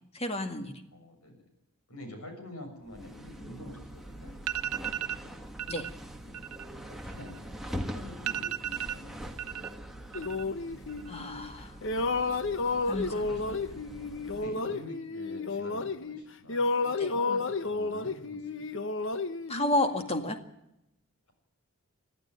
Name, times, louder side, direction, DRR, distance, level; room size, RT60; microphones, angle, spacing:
voice 1, 0.1-0.7 5.7-5.9 11.1-11.7 12.9-13.3 17.0-17.1 19.5-20.4, left 1 dB, 25° left, 6 dB, 2.1 m, -31 dB
voice 2, 0.9-1.4 1.9-5.4 6.2-6.4 6.9-9.7 9.9-10.5 11.5-11.8 12.6-13.8 14.2-18.9, left 1 dB, 90° left, 6 dB, 6.6 m, -47 dB
sound 1, 2.8-14.6, equal, ahead, 1.6 m, -43 dB
sound 2, 4.0-4.1 4.4-5.2 5.6-5.9 6.2-7.7 7.9-8.0 8.3-9.7 10.0-10.6 10.9-11.4, right 11 dB, 90° right, 0.9 m, -35 dB
sound 3, 10.1-11.5 11.8-16.2 16.5-20.3, left 3 dB, 60° left, 1.1 m, -32 dB
21.5 x 13.0 x 9.1 m, 0.84 s
head